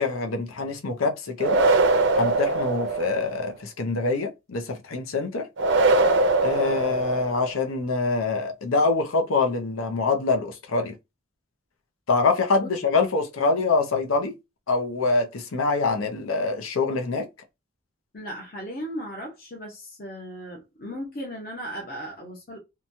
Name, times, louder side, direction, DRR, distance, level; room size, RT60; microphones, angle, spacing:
voice 1, 0.0-1.6 2.1-5.5 6.4-10.9 12.1-14.3 14.7-17.3, left 3 dB, 85° left, 0.6 m, -25 dB
sound 1, 1.4-3.5 5.6-7.6, right 2 dB, 60° right, 0.5 m, -22 dB
voice 2, 18.1-22.6, equal, 45° left, 0.8 m, -36 dB
2.9 x 2.3 x 2.6 m
head